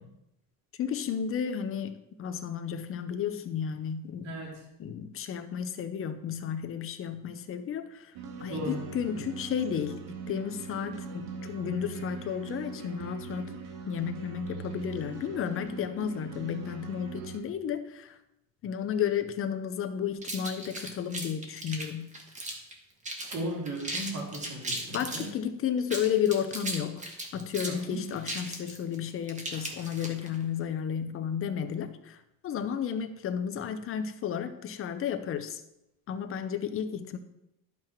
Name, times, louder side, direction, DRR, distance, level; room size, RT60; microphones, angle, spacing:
voice 1, 0.8-4.3 4.8-10.0 10.3-13.6 13.9-18.2 18.6-22.1 24.9-27.1 27.3-35.6 36.1-37.2, left 8 dB, 30° left, 9 dB, 0.7 m, -33 dB
voice 2, 4.2-4.6 8.5-8.8 22.5-22.6 23.3-25.3 27.7-28.1, right 1 dB, 40° right, -2 dB, 2.4 m, -36 dB
sound 1, 8.1-17.4, right 5 dB, 70° right, 1.5 m, -41 dB
sound 2, 20.2-22.7 23.0-23.4 23.6-25.3 25.8-30.4, right 1 dB, 15° right, 1.4 m, -37 dB
11.5 x 5.8 x 4.5 m, 0.84 s
cardioid pair, 155°, 41 cm